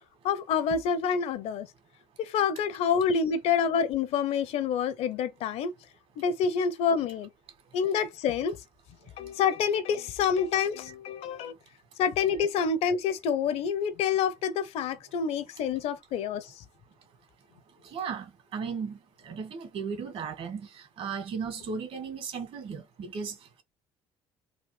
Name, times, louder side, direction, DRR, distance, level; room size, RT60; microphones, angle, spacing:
voice 1, 0.2-1.7 2.2-5.7 6.2-7.3 7.7-8.6 9.2-11.5 12.0-16.6, left 6 dB, 70° left, 0.8 m, -27 dB
voice 2, 17.8-23.4, right 6 dB, 60° right, 2.1 m, -36 dB
4.1 x 2.8 x 3.3 m
supercardioid pair, 90°, 11 cm